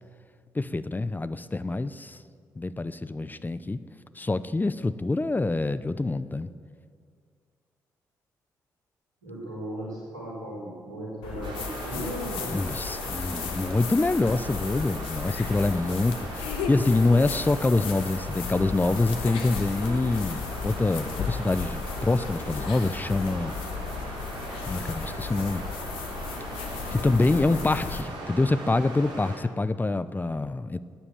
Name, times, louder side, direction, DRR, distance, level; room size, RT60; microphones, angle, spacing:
voice 1, 0.5-2.2 2.6-3.8 4.2-6.5 12.5-23.6 24.6-25.6 26.9-30.8, left 2 dB, 20° left, 14 dB, 0.7 m, -26 dB
voice 2, 9.2-12.6, right 1 dB, 90° right, -5 dB, 4.7 m, -36 dB
sound 1, 11.2-28.0, left 6 dB, 70° left, 1.4 m, -35 dB
sound 2, 11.4-29.4, right 2 dB, 60° right, 3.4 m, -39 dB
16.0 x 9.9 x 8.2 m, 2.1 s
figure-of-eight pair, 40°, 9 cm